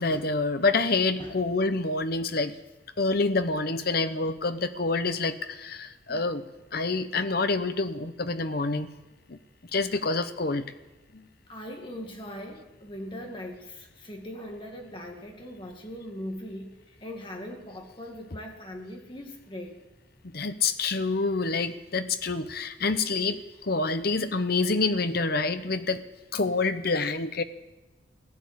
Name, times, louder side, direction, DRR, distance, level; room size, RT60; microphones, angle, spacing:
voice 1, 0.0-2.5 3.0-6.4 6.7-8.9 9.3-9.4 9.7-10.7 11.1-11.3 20.2-26.0 26.3-27.4, left 3 dB, 50° left, 10 dB, 0.9 m, -27 dB
voice 2, 11.5-19.8, left 1 dB, 25° left, 2 dB, 2.1 m, -40 dB
16.0 x 11.0 x 8.1 m, 1.1 s
head